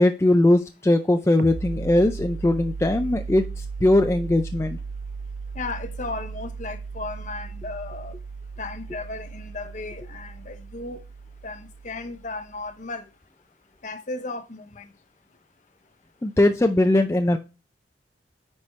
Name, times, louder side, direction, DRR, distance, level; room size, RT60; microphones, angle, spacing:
voice 1, 0.0-4.8 16.2-17.4, left 1 dB, 15° left, 0.4 m, -20 dB
sound 1, 1.4-12.7, right 4 dB, 55° right, 0.6 m, -36 dB
voice 2, 5.5-8.1 8.6-11.0 11.4-13.0 13.8-14.9, left 3 dB, 40° left, 0.8 m, -35 dB
9.2 x 4.3 x 3.2 m
head